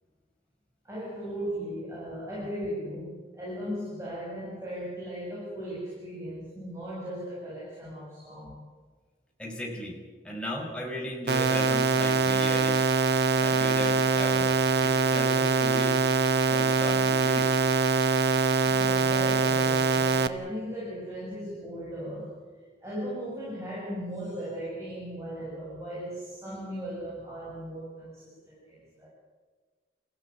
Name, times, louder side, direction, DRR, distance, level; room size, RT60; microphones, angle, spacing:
voice 1, 0.8-8.6 18.6-22.4 22.8-29.1, equal, 15° right, -6 dB, 7.8 m, -37 dB
voice 2, 9.4-10.0 10.2-12.9 13.4-14.5 14.8-16.0 16.4-17.6, left 1 dB, 5° left, -1 dB, 5.8 m, -36 dB
sound 1, 11.3-20.3, right 4 dB, 65° right, 1.2 m, -24 dB
30.0 x 16.0 x 8.7 m, 1.4 s
head